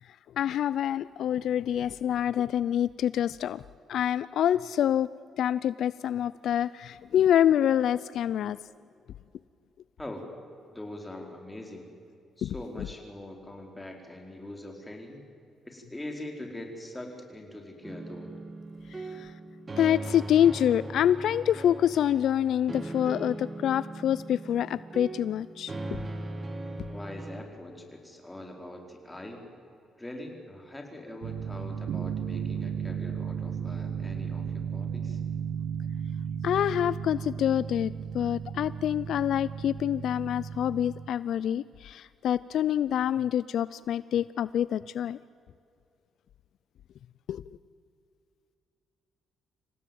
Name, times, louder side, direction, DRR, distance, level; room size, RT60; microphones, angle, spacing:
voice 1, 0.4-3.6 3.9-8.6 12.4-12.9 18.9-19.3 19.8-26.0 36.4-45.2 47.3-47.4, left 10 dB, 70° left, 18 dB, 0.5 m, -26 dB
voice 2, 10.7-11.9 12.4-15.2 15.7-18.4 19.1-19.2 26.9-29.4 30.0-35.2, left 1 dB, 10° left, 2 dB, 4.8 m, -42 dB
sound 1, 17.8-27.4, right 2 dB, 30° right, 2.4 m, -39 dB
sound 2, 31.2-41.1, right 7 dB, 75° right, 0.7 m, -34 dB
27.0 x 17.0 x 9.4 m, 2.5 s
cardioid pair, 90°, 0 cm